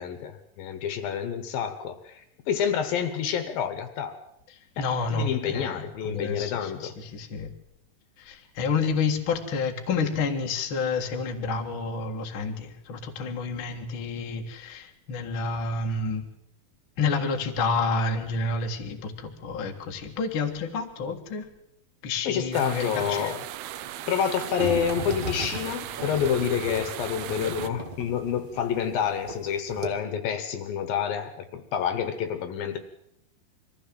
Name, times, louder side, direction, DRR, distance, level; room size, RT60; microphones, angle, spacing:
voice 1, 0.0-4.2 4.8-6.9 22.2-23.4 24.1-32.8, left 8 dB, 70° left, 9 dB, 2.7 m, -28 dB
voice 2, 4.8-7.5 8.2-16.2 17.0-21.4 22.0-23.3 27.3-27.5, left 4 dB, 45° left, 3 dB, 1.8 m, -29 dB
sound 1, 22.5-27.7, right 12 dB, 75° right, 2.6 m, -37 dB
sound 2, 24.6-29.4 29.7-29.9, right 1 dB, 30° right, 0.9 m, -35 dB
23.0 x 15.0 x 7.7 m, 0.80 s
omnidirectional pair, 4.7 m